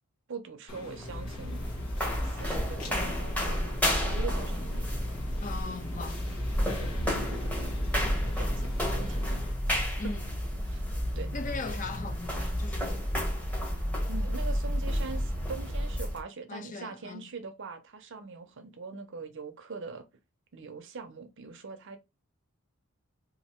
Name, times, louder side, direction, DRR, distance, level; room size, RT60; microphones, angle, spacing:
voice 1, 0.3-1.6 2.2-4.9 6.5-7.7 8.0-9.4 10.6-10.9 11.1-11.3 14.1-20.1 20.5-22.0, right 4 dB, 55° right, 0.6 m, -42 dB
sound 1, 0.7-9.5, left 1 dB, 80° left, 1.2 m, -43 dB
sound 2, 1.0-16.2, equal, 5° left, 0.9 m, -31 dB
voice 2, 5.4-6.2 10.0-10.2 11.3-13.2 16.5-17.3, left 3 dB, 35° left, 0.4 m, -39 dB
2.9 x 2.5 x 4.3 m
head